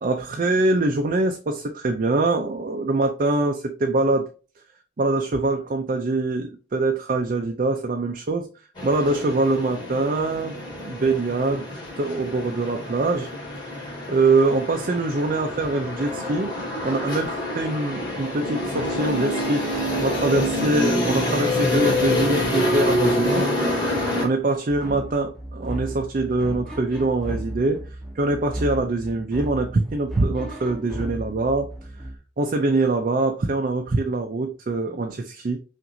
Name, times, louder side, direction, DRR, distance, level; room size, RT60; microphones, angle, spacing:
voice 1, 0.0-4.3 5.0-8.5 8.8-10.6 10.8-11.7 12.0-13.3 14.1-16.5 16.8-23.5 24.2-27.8 28.2-31.7 32.4-35.6, right 2 dB, 45° right, 0.4 m, -23 dB
sound 1, 8.8-24.2, left 1 dB, 25° left, 2.1 m, -26 dB
sound 2, 24.7-32.2, right 1 dB, ahead, 0.8 m, -34 dB
5.7 x 2.5 x 2.6 m
head